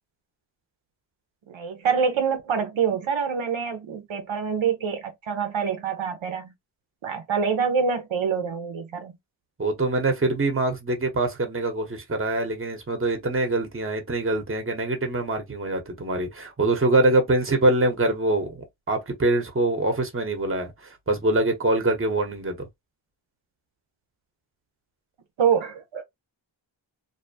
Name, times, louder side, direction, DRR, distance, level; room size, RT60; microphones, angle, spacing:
voice 1, 1.5-6.5 7.0-9.2 25.4-26.0, right 6 dB, 75° right, 0.7 m, -26 dB
voice 2, 9.6-22.7, right 2 dB, 25° right, 0.9 m, -24 dB
2.7 x 2.1 x 2.6 m
wide cardioid pair, 80°, 48 cm